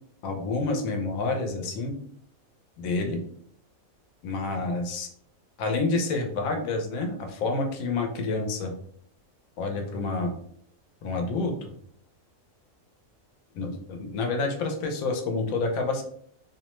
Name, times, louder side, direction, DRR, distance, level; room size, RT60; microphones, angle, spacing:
voice 1, 0.2-1.9 2.8-3.2 4.2-5.1 5.6-8.7 9.6-10.3 11.0-11.7 13.5-16.0, left 3 dB, 80° left, 4 dB, 1.0 m, -28 dB
2.6 x 2.1 x 2.9 m, 0.64 s
omnidirectional pair, 1.4 m